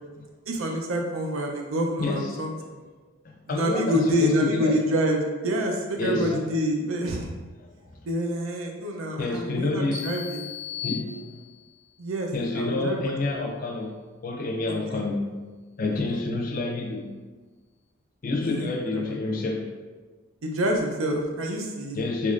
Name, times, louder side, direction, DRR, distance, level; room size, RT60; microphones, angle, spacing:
voice 1, 0.5-2.5 3.5-7.3 8.0-10.5 12.0-13.4 14.9-15.0 16.1-16.2 18.4-19.0 20.4-22.0, equal, 85° right, 1 dB, 0.5 m, -27 dB
voice 2, 2.0-2.4 3.5-4.8 6.0-6.4 7.6-7.7 9.2-10.0 10.8-11.1 12.3-14.0 14.2-15.3 15.8-17.1 18.2-19.7 21.9-22.3, left 3 dB, 45° left, 1 dB, 0.5 m, -28 dB
sound 1, 9.9-11.8, left 9 dB, 55° right, 1.2 m, -37 dB
3.6 x 3.0 x 2.4 m, 1.3 s
head